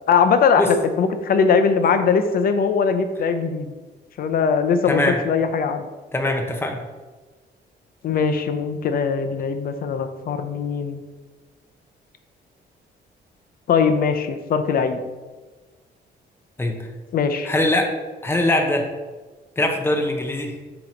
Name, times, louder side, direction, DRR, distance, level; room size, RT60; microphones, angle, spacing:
voice 1, 0.1-3.7 4.2-5.9 8.0-11.0 13.7-15.0 17.1-17.5, left 6 dB, 55° left, 8 dB, 0.6 m, -20 dB
voice 2, 4.9-5.2 6.1-6.8 16.6-16.7 17.5-17.9 18.2-18.9 19.6-20.5, left 1 dB, 10° left, 2 dB, 0.8 m, -21 dB
7.3 x 3.0 x 5.1 m, 1.3 s
cardioid pair, 165°, 19 cm